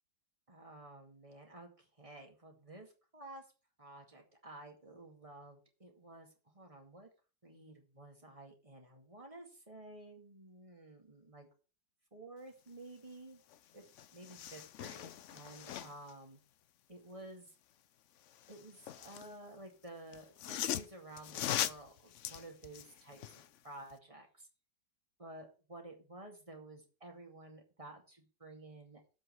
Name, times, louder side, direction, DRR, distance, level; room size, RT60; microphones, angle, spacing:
voice 1, 0.5-3.4 3.8-7.1 7.4-11.5 12.1-13.4 13.7-13.8 14.1-16.4 16.9-17.5 18.5-24.5 25.2-29.1, right 2 dB, 20° right, 2 dB, 2.2 m, -52 dB
sound 1, 13.5-13.6 13.9-16.1 18.3-19.3 20.1-23.5 23.9-24.0, left 11 dB, 75° left, 0.6 m, -40 dB
7.7 x 5.5 x 7.5 m, 0.34 s
omnidirectional pair, 1.9 m